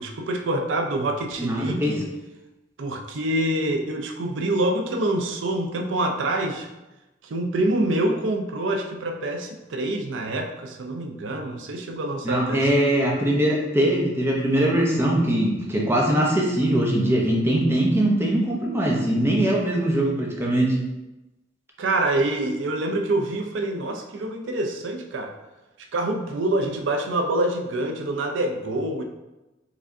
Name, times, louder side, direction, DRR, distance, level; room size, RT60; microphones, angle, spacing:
voice 1, 0.0-2.0 2.8-6.7 7.2-13.0 21.8-25.3 25.9-29.0, right 1 dB, 85° right, 4 dB, 0.5 m, -26 dB
voice 2, 1.4-1.9 12.2-20.7, right 1 dB, 15° right, -2 dB, 0.7 m, -21 dB
4.8 x 3.3 x 2.6 m, 1.0 s
head